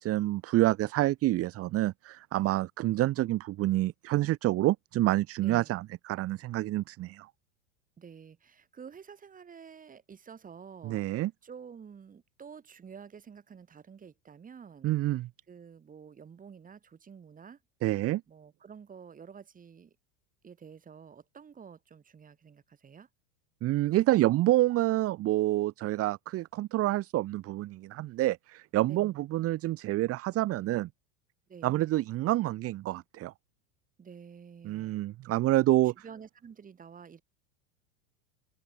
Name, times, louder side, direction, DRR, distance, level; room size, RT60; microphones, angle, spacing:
voice 1, 0.0-7.3 10.8-11.3 14.8-15.3 17.8-18.2 23.6-30.9 31.6-33.3 34.6-35.9, right 16 dB, 40° right, 1.2 m, -28 dB
voice 2, 5.4-5.8 8.0-14.9 15.5-17.6 18.3-20.0 20.4-23.1 28.9-29.2 31.5-31.8 34.0-35.0 36.0-37.2, right 7 dB, 20° right, 3.7 m, -50 dB
supercardioid pair, 120°, 37 cm